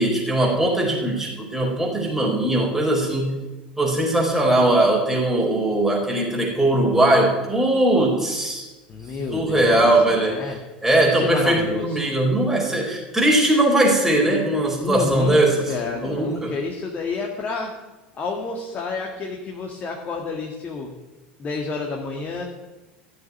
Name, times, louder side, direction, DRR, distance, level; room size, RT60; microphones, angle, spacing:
voice 1, 0.0-3.4 3.8-8.7 9.3-10.4 10.8-15.7 16.0-16.5, right 1 dB, 5° right, -3 dB, 4.4 m, -20 dB
voice 2, 8.9-10.6 11.1-12.0 14.8-15.3 15.7-17.8 18.1-20.9 21.4-22.4, left 4 dB, 30° left, 1 dB, 1.9 m, -29 dB
14.5 x 6.8 x 9.5 m, 1.1 s
figure-of-eight pair, 75°, 5 cm